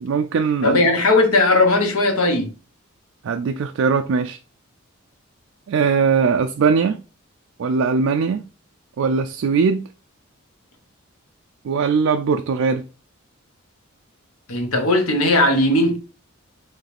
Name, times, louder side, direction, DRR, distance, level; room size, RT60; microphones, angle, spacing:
voice 1, 0.0-0.8 3.2-4.4 5.7-7.0 7.6-8.5 9.0-9.9 11.6-12.9, right 5 dB, 70° right, 0.3 m, -20 dB
voice 2, 0.6-2.5 14.5-16.0, left 2 dB, 90° left, 1.1 m, -17 dB
4.7 x 3.2 x 3.3 m
head